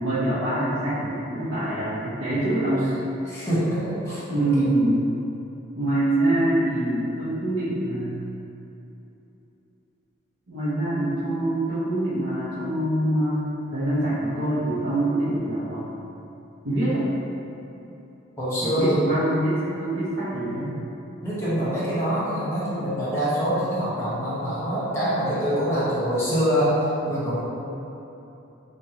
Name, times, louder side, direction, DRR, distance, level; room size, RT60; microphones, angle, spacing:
voice 1, 0.0-3.0 4.3-5.0 5.8-8.2 10.5-15.8 16.6-17.1 18.6-20.7, right 1 dB, 90° right, -14 dB, 1.1 m, -25 dB
voice 2, 3.3-4.6 18.4-19.1 21.2-26.7 27.1-27.4, equal, 10° left, -11 dB, 1.1 m, -25 dB
6.2 x 2.6 x 2.8 m, 3.0 s
head